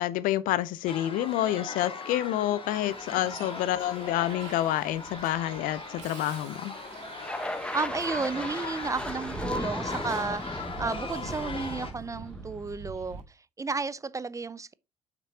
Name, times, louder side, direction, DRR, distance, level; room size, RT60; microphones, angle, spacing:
voice 1, 0.0-6.7, left 13 dB, 65° left, 0.5 m, -28 dB
sound 1, 0.9-11.9, left 3 dB, 35° left, 1.9 m, -39 dB
Bus, 2.7-13.2, right 5 dB, 80° right, 1.3 m, -45 dB
voice 2, 3.1-3.5 7.7-14.7, right 4 dB, 20° right, 0.5 m, -33 dB
sound 2, 7.2-12.5, left 1 dB, 5° left, 1.0 m, -37 dB
8.1 x 5.9 x 2.8 m
hypercardioid pair, 50°, 15 cm